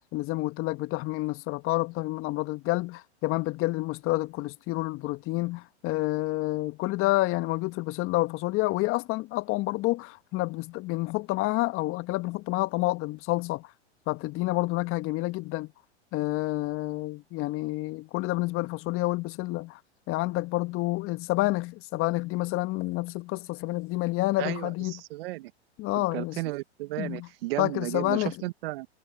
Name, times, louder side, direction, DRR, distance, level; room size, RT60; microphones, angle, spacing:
voice 1, 0.0-13.7 14.1-15.7 16.1-19.8 20.1-25.0 25.8-26.4 27.0-27.3 27.6-28.3, left 20 dB, 40° left, 1.3 m, -29 dB
voice 2, 24.4-25.5 26.1-28.9, right 20 dB, 60° right, 1.7 m, -34 dB
hypercardioid pair, 95°, 34 cm